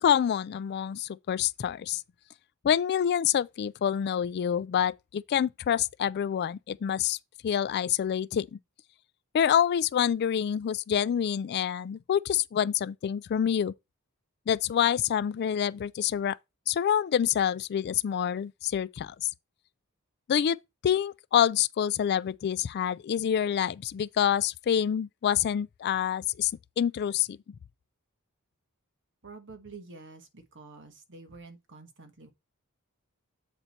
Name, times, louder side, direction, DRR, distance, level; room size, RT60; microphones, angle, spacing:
voice 1, 0.0-2.0 2.6-7.2 7.4-8.6 9.3-13.7 14.5-16.4 16.7-19.3 20.3-20.6 20.8-26.5 26.8-27.4, left 9 dB, 50° left, 0.3 m, -27 dB
voice 2, 29.2-32.3, right 3 dB, 55° right, 1.4 m, -48 dB
7.9 x 4.2 x 4.4 m
head